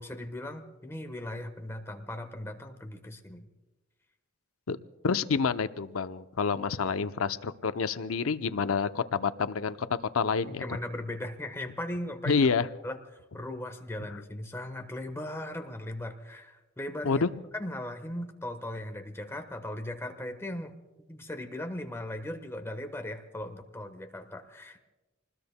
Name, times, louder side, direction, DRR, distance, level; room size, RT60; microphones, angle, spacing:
voice 1, 0.0-3.5 5.1-5.2 10.5-12.4 12.8-13.0 13.3-17.2 17.5-20.8 21.1-24.8, left 1 dB, 10° left, 6 dB, 1.1 m, -38 dB
voice 2, 5.0-10.6 12.3-12.7 17.0-17.3, left 5 dB, 85° left, 11 dB, 0.6 m, -28 dB
28.0 x 20.5 x 2.2 m, 1.1 s
head